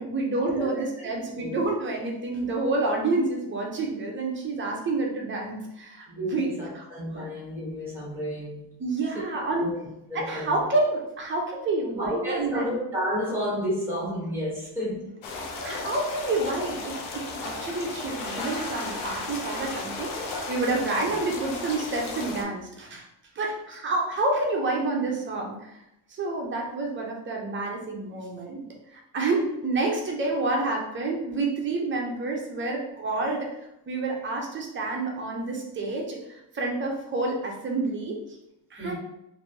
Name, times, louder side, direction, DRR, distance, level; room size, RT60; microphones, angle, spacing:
voice 1, 0.0-6.0 6.3-6.5 6.7-6.8 7.1-7.3 8.8-9.7 10.1-12.7 15.6-23.1 23.4-25.8 26.1-28.6 28.9-38.2 38.7-38.9, right 2 dB, 25° right, -1 dB, 0.5 m, -29 dB
voice 2, 0.6-1.5 6.1-8.7 9.1-9.3 9.6-9.8 10.1-10.6 11.9-15.1 38.8-38.9, equal, 5° right, -5 dB, 1.0 m, -31 dB
sound 1, 15.2-22.4, left 3 dB, 80° left, 0.8 m, -35 dB
sound 2, 17.4-21.9, left 2 dB, 45° left, 0.8 m, -41 dB
3.2 x 2.5 x 2.7 m, 0.84 s
cardioid pair, 155°, 47 cm